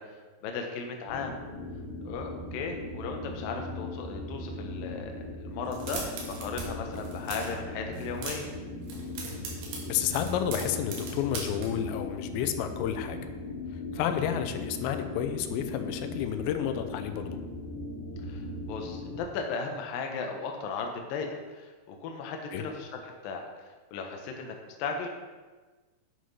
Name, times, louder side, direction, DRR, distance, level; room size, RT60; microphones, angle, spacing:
voice 1, 0.0-1.4 2.0-5.1 5.4-6.1 6.4-8.5 18.3-23.4 23.9-25.1, left 5 dB, 70° left, 3 dB, 2.4 m, -36 dB
sound 1, 1.1-19.2, left 1 dB, 50° left, 4.2 m, -39 dB
sound 2, 5.7-6.7 6.9-7.6 7.9-8.6 8.8-11.7, right 4 dB, 85° right, 4.1 m, -39 dB
voice 2, 9.9-13.2 13.7-17.4 22.5-22.6, left 10 dB, 90° left, 8 dB, 3.0 m, -31 dB
9.9 x 6.3 x 5.6 m, 1.3 s
omnidirectional pair, 5.0 m